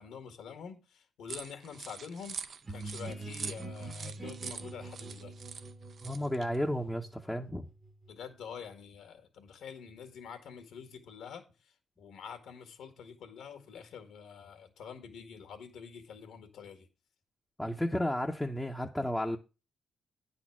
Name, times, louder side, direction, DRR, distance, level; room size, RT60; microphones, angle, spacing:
voice 1, 0.0-2.4 2.7-5.3 8.1-16.9, left 7 dB, 85° left, 1.8 m, -47 dB
sound 1, 1.3-6.6, right 6 dB, 50° right, 0.5 m, -44 dB
sound 2, 2.7-8.3, right 2 dB, 20° right, 0.9 m, -45 dB
voice 2, 6.0-7.7 17.6-19.4, left 1 dB, 5° left, 0.7 m, -32 dB
9.6 x 4.3 x 6.0 m
cardioid pair, 105°, 0 cm